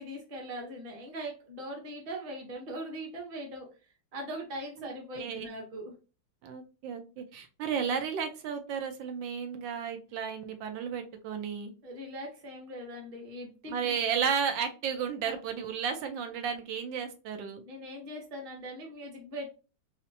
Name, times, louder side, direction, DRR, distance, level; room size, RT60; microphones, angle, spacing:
voice 1, 0.0-3.7 4.1-5.9 11.8-14.0 15.2-15.4 17.6-19.5, equal, 30° right, 0 dB, 0.7 m, -41 dB
voice 2, 4.8-5.5 6.4-11.7 13.7-17.6, right 7 dB, 90° right, 7 dB, 1.4 m, -33 dB
4.2 x 2.1 x 2.6 m, 0.33 s
omnidirectional pair, 2.0 m